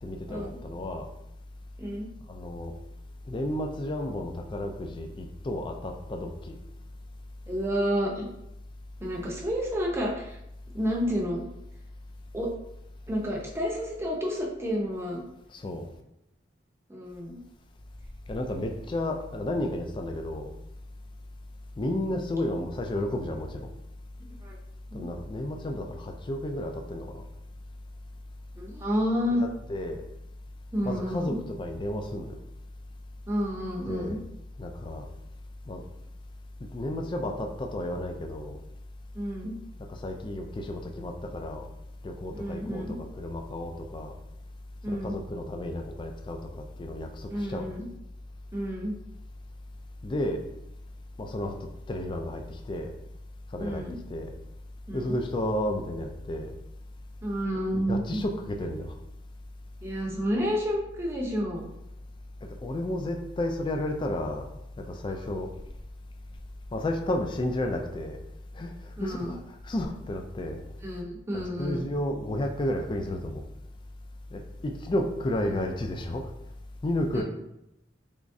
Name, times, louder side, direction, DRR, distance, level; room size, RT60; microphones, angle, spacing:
voice 1, 0.0-1.1 2.3-2.7 3.3-6.6 15.5-15.9 18.3-20.5 21.8-23.7 24.9-27.2 29.4-30.1 30.8-32.4 33.9-34.2 34.6-35.1 35.7-35.8 36.6-38.6 39.9-41.7 42.0-44.1 44.9-47.7 50.0-50.5 51.2-52.9 53.5-54.3 54.9-56.5 57.7-58.9 62.4-64.5 64.8-65.5 66.7-68.2 68.5-70.6 71.3-73.4 74.3-76.3 76.8-77.2, left 1 dB, 25° left, 4 dB, 0.3 m, -32 dB
voice 2, 7.5-8.3 9.0-10.4 10.7-11.4 12.3-12.5 13.1-15.2 16.9-17.4 24.4-24.6 24.9-25.1 28.5-29.4 30.7-31.4 33.3-34.2 39.1-39.5 42.3-42.9 44.8-45.1 47.3-47.8 48.5-48.9 53.6-53.9 54.9-55.2 57.2-58.2 59.8-61.6 65.1-65.4 69.0-69.3 70.8-71.8 75.5-75.6 77.1-77.2, equal, 15° right, -3 dB, 0.6 m, -30 dB
3.6 x 3.0 x 2.6 m, 0.84 s
head